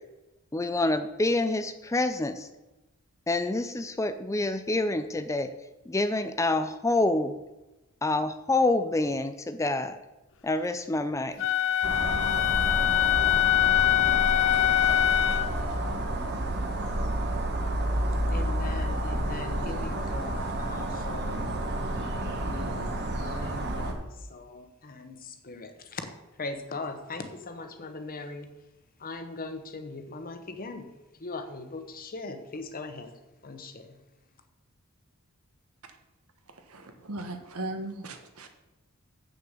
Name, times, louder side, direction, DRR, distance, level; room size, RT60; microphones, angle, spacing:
voice 1, 0.5-2.5 3.3-5.5 5.9-7.3 8.0-10.0 10.4-11.5, left 2 dB, 15° left, 10 dB, 0.4 m, -27 dB
Wind instrument woodwind instrument, 11.4-15.5, left 12 dB, 60° left, 0.6 m, -23 dB
sound 1, 11.8-23.9, right 1 dB, 50° right, 1.4 m, -30 dB
voice 2, 18.3-21.6 22.5-26.1 26.4-28.5 29.0-30.9 31.2-34.0, left 3 dB, 40° left, 8 dB, 1.0 m, -40 dB
voice 3, 36.7-38.5, right 2 dB, 80° right, 6 dB, 1.3 m, -37 dB
8.0 x 6.7 x 6.6 m, 1.0 s
head